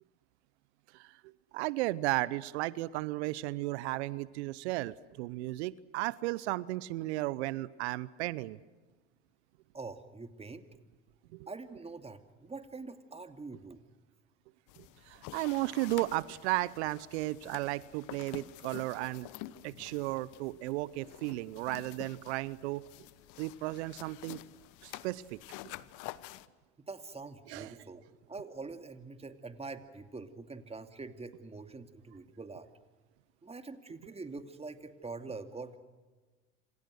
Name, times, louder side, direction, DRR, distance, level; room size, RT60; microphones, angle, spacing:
voice 1, 1.5-8.6 11.3-11.5 14.8-19.3 19.6-22.8 23.4-24.4 24.8-25.4 27.5-27.7, right 18 dB, 70° right, 20 dB, 0.9 m, -34 dB
voice 2, 9.7-10.6 11.5-13.8 26.9-32.7 33.4-35.8, right 3 dB, 15° right, 8 dB, 2.6 m, -44 dB
sound 1, 14.7-26.5, left 16 dB, 60° left, 1.2 m, -49 dB
27.5 x 27.0 x 6.5 m, 1.3 s
hypercardioid pair, 70°, 35 cm